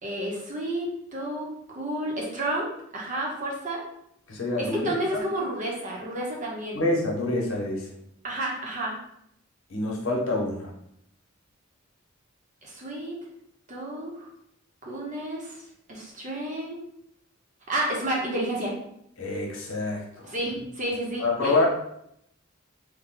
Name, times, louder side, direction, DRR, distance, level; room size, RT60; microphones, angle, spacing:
voice 1, 0.0-3.8 4.6-6.8 8.2-8.9 12.6-13.2 13.7-14.3 14.8-16.8 17.7-18.8 20.2-21.6, right 1 dB, 40° right, -2 dB, 0.9 m, -31 dB
voice 2, 4.3-5.2 6.7-7.9 9.7-10.7 19.2-20.3 21.2-21.7, left 2 dB, 75° left, -2 dB, 0.9 m, -27 dB
3.3 x 2.2 x 3.6 m, 0.74 s
head